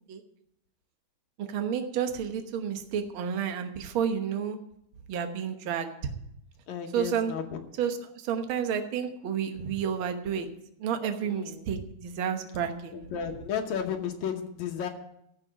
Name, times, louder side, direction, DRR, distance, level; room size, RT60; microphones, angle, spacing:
voice 1, 1.4-4.6 5.1-5.9 6.9-7.3 7.8-10.5 10.8-13.0, right 8 dB, 55° right, 6 dB, 1.6 m, -30 dB
voice 2, 6.7-7.6 11.2-11.6 12.9-14.9, left 8 dB, 75° left, 4 dB, 2.4 m, -33 dB
14.5 x 5.8 x 8.6 m, 0.77 s
omnidirectional pair, 3.3 m